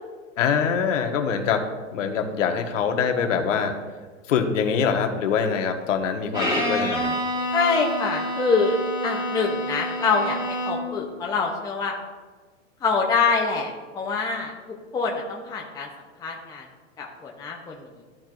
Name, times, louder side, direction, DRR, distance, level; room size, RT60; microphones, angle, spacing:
voice 1, 0.4-1.6 1.9-3.8 4.3-7.1, left 6 dB, 70° left, 5 dB, 1.3 m, -24 dB
Bowed string instrument, 6.3-11.0, equal, 10° right, 2.3 m, -28 dB
voice 2, 7.5-8.8 9.0-12.0 12.8-14.5 14.9-15.9 16.2-16.7 17.0-17.9, left 4 dB, 10° left, -1 dB, 0.6 m, -25 dB
13.5 x 4.6 x 2.5 m, 1.4 s
hypercardioid pair, 130°, 39 cm